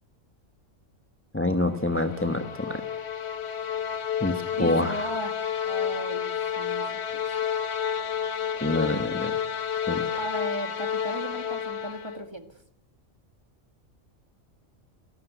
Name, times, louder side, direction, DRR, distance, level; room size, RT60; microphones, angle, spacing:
voice 1, 1.3-2.8 4.2-5.1 8.6-9.4 9.9-10.2, left 2 dB, 10° left, 7 dB, 1.0 m, -27 dB
sound 1, 1.7-12.3, left 8 dB, 55° left, 1.2 m, -30 dB
voice 2, 4.5-5.4 5.6-7.0 10.2-12.6, right 1 dB, 20° right, 8 dB, 1.8 m, -36 dB
27.0 x 12.5 x 9.3 m, 0.78 s
omnidirectional pair, 1.3 m